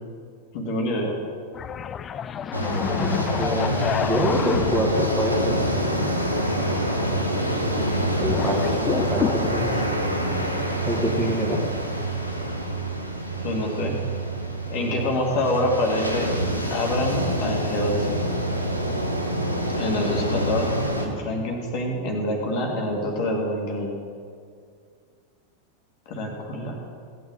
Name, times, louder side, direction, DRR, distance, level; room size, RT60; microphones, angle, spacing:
voice 1, 0.5-1.2 11.1-11.2 13.4-14.0 14.7-16.3 16.7-18.3 19.8-23.9 26.1-26.8, left 1 dB, 45° left, 0 dB, 2.1 m, -26 dB
sound 1, 1.5-9.5, left 8 dB, 25° left, 0.3 m, -31 dB
sound 2, 2.5-21.1, right 1 dB, 90° left, 1.2 m, -26 dB
voice 2, 3.0-6.1 8.1-8.8 9.1-9.9 10.8-11.6, equal, 10° right, -2 dB, 2.0 m, -26 dB
17.0 x 9.2 x 3.9 m, 2.2 s
figure-of-eight pair, 90°, 0 cm